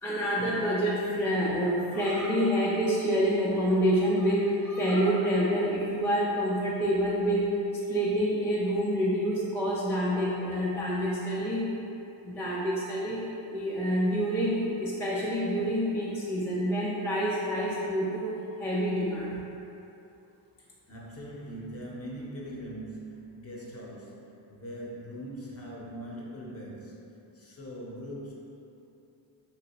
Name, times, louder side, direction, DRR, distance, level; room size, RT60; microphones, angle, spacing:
voice 1, 0.0-7.5 7.9-11.7 12.2-13.2 13.5-18.3 18.6-19.4, equal, 5° left, -7 dB, 0.3 m, -27 dB
voice 2, 20.6-27.1 27.3-28.3, equal, 35° left, -4 dB, 0.7 m, -41 dB
3.1 x 2.9 x 2.9 m, 2.8 s
cardioid pair, 95°, 45 cm